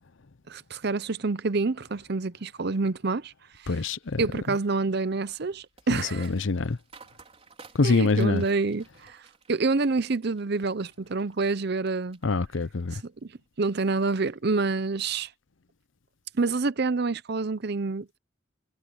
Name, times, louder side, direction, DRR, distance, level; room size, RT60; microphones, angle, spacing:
voice 1, 0.5-3.3 4.2-6.3 7.8-9.2 9.5-12.2 13.0-13.3 13.6-15.3 16.4-18.2, right 3 dB, 55° right, 0.7 m, -27 dB
voice 2, 3.7-4.2 5.9-6.8 7.7-8.4 12.2-13.0, left 3 dB, 70° left, 0.7 m, -25 dB
sound 1, 4.0-12.3 12.6-13.2 13.6-13.9, right 4 dB, 30° right, 4.5 m, -55 dB
head